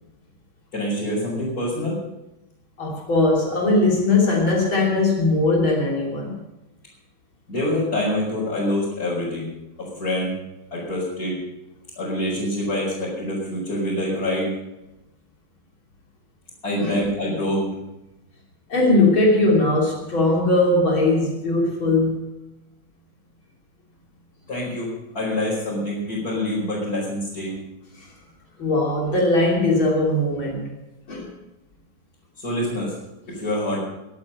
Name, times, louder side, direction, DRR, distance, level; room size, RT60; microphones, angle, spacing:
voice 1, 0.7-2.0 7.5-9.5 9.8-10.3 10.7-11.4 12.0-14.5 16.6-17.7 24.5-27.6 32.4-32.9 33.3-33.8, left 1 dB, 45° left, -6 dB, 5.3 m, -26 dB
voice 2, 2.8-6.4 16.8-17.0 18.7-22.2 28.0-28.1 28.6-30.7 31.1-31.3, left 2 dB, 85° left, -2 dB, 4.1 m, -20 dB
22.5 x 8.8 x 5.5 m, 0.94 s
omnidirectional pair, 2.2 m